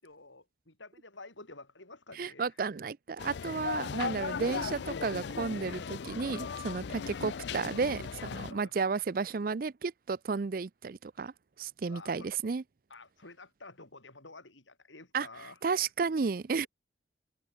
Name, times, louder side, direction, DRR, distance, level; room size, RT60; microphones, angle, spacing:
voice 1, 0.0-2.5 6.9-7.2 8.5-8.7 11.9-12.3 12.9-15.6, left 3 dB, 85° left, 6.4 m, -51 dB
voice 2, 2.2-11.3 11.6-12.6 15.1-15.3 15.6-16.7, right 4 dB, 50° right, 0.4 m, -33 dB
sound 1, 3.2-8.5, left 6 dB, 65° left, 0.4 m, -37 dB
head